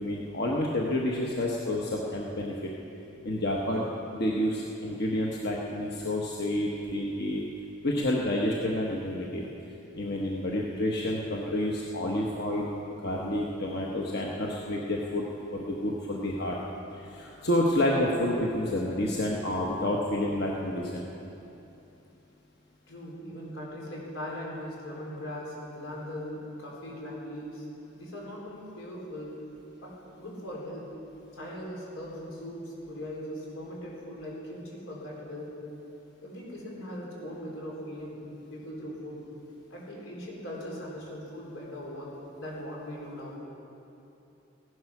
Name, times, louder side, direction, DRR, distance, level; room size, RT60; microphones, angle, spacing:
voice 1, 0.0-2.7 3.2-3.9 4.1-7.4 7.8-9.4 9.9-12.7 13.0-15.2 15.5-16.6 17.0-21.0, left 1 dB, 55° left, -2 dB, 1.2 m, -29 dB
voice 2, 22.9-27.7 27.9-29.3 29.8-30.9 31.3-35.6 36.2-38.2 38.5-39.2 39.7-42.1 42.4-43.4, equal, 90° left, -3 dB, 4.2 m, -40 dB
16.0 x 11.5 x 6.0 m, 2.8 s
head